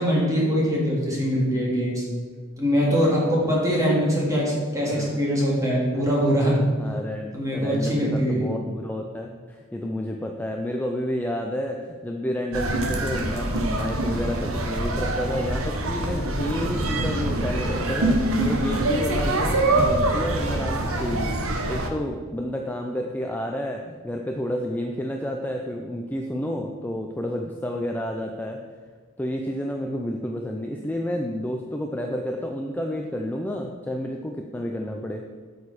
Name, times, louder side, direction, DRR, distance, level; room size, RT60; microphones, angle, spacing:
voice 1, 0.0-2.0 2.6-6.6 7.3-8.5, equal, 15° right, -4 dB, 2.2 m, -22 dB
voice 2, 4.8-5.2 5.9-6.0 6.8-28.6 29.2-35.2, equal, 10° left, 2 dB, 0.4 m, -30 dB
sound 1, 12.5-21.9, right 1 dB, 75° right, 1.0 m, -25 dB
Vehicle / Engine, 14.4-17.4, equal, 55° right, 2.8 m, -44 dB
8.8 x 6.7 x 4.2 m, 1.5 s
head